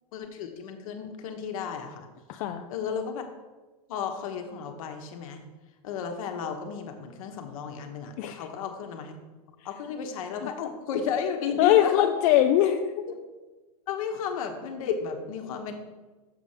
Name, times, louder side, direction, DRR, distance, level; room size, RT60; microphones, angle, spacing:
voice 1, 0.1-2.1 2.7-3.2 3.9-5.4 5.8-9.2 9.6-12.1 13.1-13.2 13.9-15.7, left 7 dB, 65° left, 4 dB, 1.2 m, -33 dB
voice 2, 2.3-2.7 8.2-8.5 10.4-10.5 11.6-13.0, left 12 dB, 50° left, 6 dB, 0.4 m, -22 dB
6.8 x 4.1 x 6.6 m, 1.2 s
hypercardioid pair, 130°, 19 cm